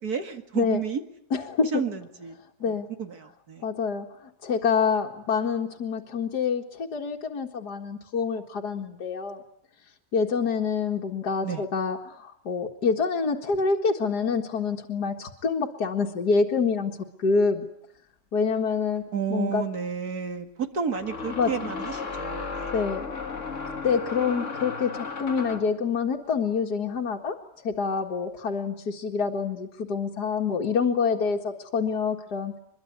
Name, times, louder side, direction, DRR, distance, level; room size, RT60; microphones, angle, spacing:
voice 1, 0.0-1.0 1.7-2.4 2.7-3.6 11.4-11.6 19.1-22.7, right 7 dB, 60° right, 7 dB, 2.5 m, -31 dB
voice 2, 1.3-1.8 2.6-2.9 3.6-9.4 10.1-17.7 18.3-19.0 19.3-19.6 21.3-21.7 22.7-23.1 23.8-27.4 27.6-32.5, left 5 dB, 65° left, 1 dB, 2.4 m, -26 dB
sound 1, 19.0-19.1 20.9-25.8, left 4 dB, 45° left, 2.1 m, -34 dB
24.0 x 22.5 x 9.5 m, 0.71 s
omnidirectional pair, 1.9 m